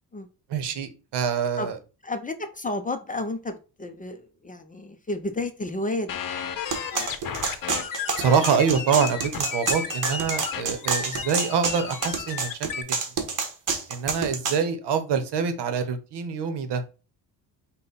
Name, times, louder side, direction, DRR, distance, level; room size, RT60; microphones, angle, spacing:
voice 1, 0.5-1.8 8.2-12.5 12.8-13.0 13.9-16.8, right 6 dB, 75° right, 9 dB, 0.9 m, -25 dB
voice 2, 2.0-6.2, left 2 dB, 20° left, 8 dB, 0.5 m, -31 dB
sound 1, 6.1-12.8, left 7 dB, 55° left, 0.7 m, -33 dB
sound 2, 6.7-14.6, right 5 dB, 50° right, 1.1 m, -28 dB
5.5 x 2.2 x 4.0 m, 0.32 s
cardioid pair, 110°, 41 cm